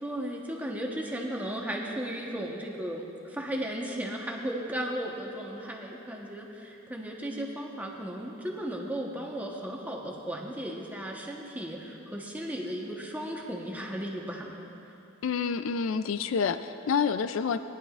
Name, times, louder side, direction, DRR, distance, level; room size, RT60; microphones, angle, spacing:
voice 1, 0.0-14.6, right 1 dB, 10° right, -1 dB, 1.1 m, -35 dB
voice 2, 15.2-17.6, left 6 dB, 70° left, 11 dB, 0.4 m, -28 dB
20.0 x 10.5 x 2.5 m, 2.9 s
head